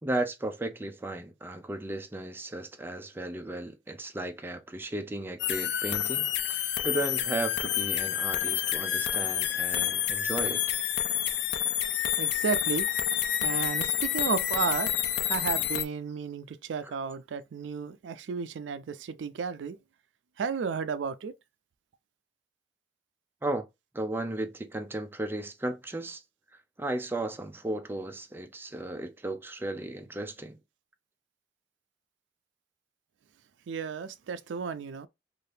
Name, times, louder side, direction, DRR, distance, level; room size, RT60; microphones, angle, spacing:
voice 1, 0.0-10.6 16.9-17.0 23.4-23.7 23.9-26.2 26.8-30.6, right 1 dB, 10° right, 0.4 m, -35 dB
sound 1, 5.4-15.8, left 10 dB, 70° left, 0.4 m, -29 dB
voice 2, 12.2-14.9 15.3-19.8 20.4-21.3 33.7-35.1, right 6 dB, 90° right, 0.4 m, -33 dB
2.7 x 2.5 x 3.2 m
head